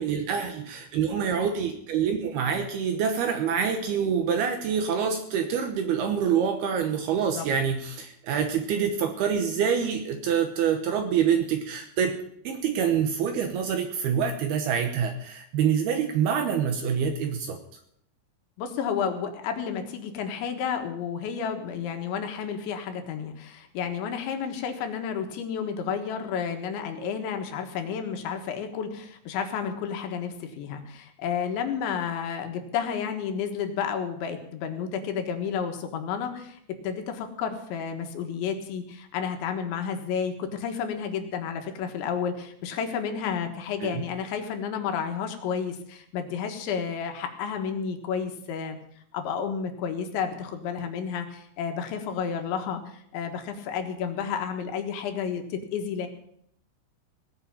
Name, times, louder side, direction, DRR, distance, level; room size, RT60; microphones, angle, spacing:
voice 1, 0.0-12.2 12.4-17.6 43.8-44.0, right 7 dB, 70° right, 6 dB, 2.6 m, -26 dB
voice 2, 18.6-36.6 36.8-48.8 49.1-56.1, left 7 dB, 75° left, 5 dB, 3.7 m, -31 dB
19.0 x 6.7 x 8.8 m, 0.71 s
omnidirectional pair, 5.5 m